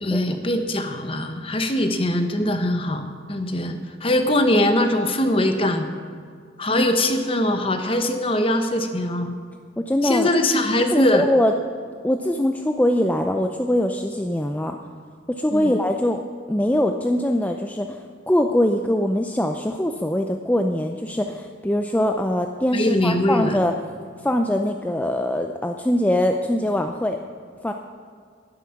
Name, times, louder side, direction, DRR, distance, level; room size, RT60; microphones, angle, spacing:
voice 1, 0.0-5.9 6.6-9.3 10.0-11.2 15.5-15.8 22.7-23.6, left 1 dB, 30° left, 7 dB, 1.0 m, -22 dB
voice 2, 9.8-10.3 10.9-11.5 12.0-14.8 15.3-16.2 16.5-23.7 24.2-27.2 27.6-27.7, left 1 dB, 10° left, 4 dB, 0.4 m, -22 dB
12.0 x 11.0 x 5.8 m, 2.1 s
head